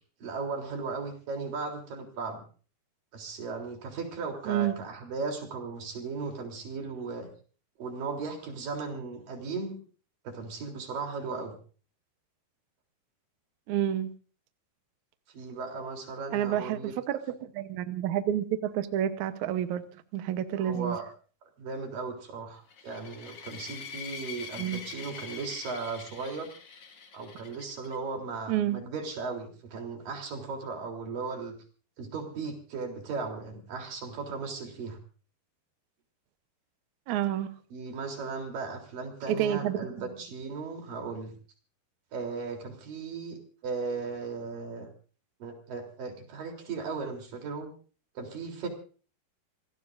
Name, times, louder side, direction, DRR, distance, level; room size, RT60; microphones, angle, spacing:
voice 1, 0.2-2.4 3.1-7.3 7.8-9.8 10.2-11.5 15.3-16.9 20.6-21.0 21.6-26.5 27.1-31.6 32.0-35.0 37.7-41.3 42.1-44.9 45.4-47.7 48.1-48.7, right 4 dB, 55° right, 2 dB, 5.0 m, -36 dB
voice 2, 13.7-14.1 16.3-16.8 17.1-19.8 20.1-21.0 24.6-24.8 28.5-28.8 37.1-37.5 39.3-39.8, right 11 dB, 80° right, 9 dB, 1.7 m, -29 dB
sound 1, 22.7-28.0, left 6 dB, 45° left, 2.4 m, -44 dB
27.0 x 17.0 x 2.6 m, 0.39 s
omnidirectional pair, 5.0 m